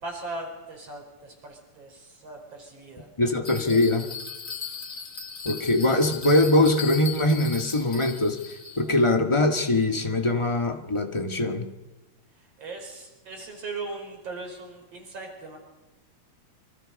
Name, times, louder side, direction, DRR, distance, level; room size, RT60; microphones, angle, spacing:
voice 1, 0.0-3.1 12.4-15.6, right 3 dB, 55° right, 3 dB, 5.7 m, -39 dB
voice 2, 3.2-4.1 5.4-8.4 8.8-11.6, left 2 dB, 15° left, 4 dB, 1.3 m, -22 dB
Bell, 3.4-9.0, left 5 dB, 35° left, 2.7 m, -38 dB
27.5 x 25.0 x 5.5 m, 1.1 s
omnidirectional pair, 3.4 m